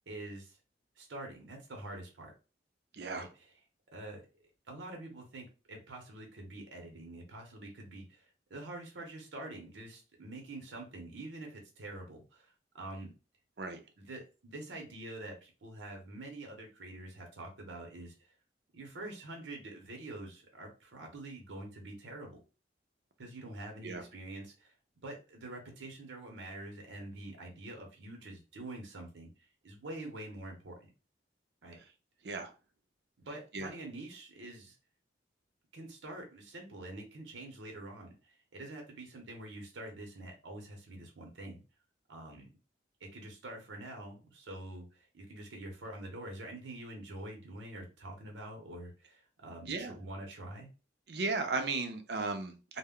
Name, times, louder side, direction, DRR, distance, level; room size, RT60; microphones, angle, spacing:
voice 1, 0.1-0.6 1.0-2.3 3.1-3.3 3.9-4.2 4.7-13.1 14.0-18.3 18.7-22.4 23.2-24.7 25.0-30.9 31.6-31.8 33.2-34.8 35.7-41.6 42.1-42.5 43.0-50.7, right 2 dB, 90° right, 2 dB, 0.7 m, -46 dB
voice 2, 2.9-3.3 13.6-13.8 23.8-24.0 32.2-32.5 33.5-33.7 49.7-50.0 51.1-52.8, right 3 dB, 60° right, 7 dB, 0.5 m, -35 dB
2.1 x 2.0 x 3.5 m, 0.32 s
head